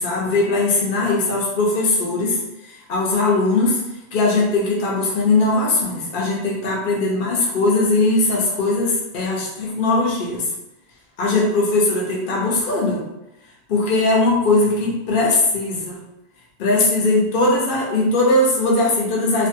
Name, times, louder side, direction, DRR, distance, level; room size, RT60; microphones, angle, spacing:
voice 1, 0.0-2.4 2.9-3.8 4.1-10.4 11.2-13.0 13.7-16.0 16.6-19.5, left 2 dB, 55° left, -4 dB, 0.8 m, -19 dB
2.6 x 2.5 x 2.6 m, 0.91 s
omnidirectional pair, 1.1 m